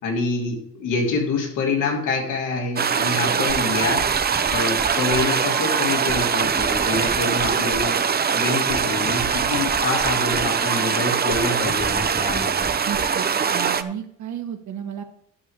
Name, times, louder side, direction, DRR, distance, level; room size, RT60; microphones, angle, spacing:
voice 1, 0.0-4.0 4.5-8.0 8.3-12.7, left 3 dB, 90° left, -1 dB, 3.2 m, -26 dB
sound 1, 2.8-13.8, right 6 dB, 30° right, 0.7 m, -22 dB
sound 2, 3.5-13.9, right 1 dB, 10° right, 1.0 m, -35 dB
voice 2, 12.8-13.3 13.5-15.0, right 9 dB, 70° right, 6 dB, 1.6 m, -32 dB
11.0 x 6.7 x 4.8 m, 0.66 s
cardioid pair, 90°, 30 cm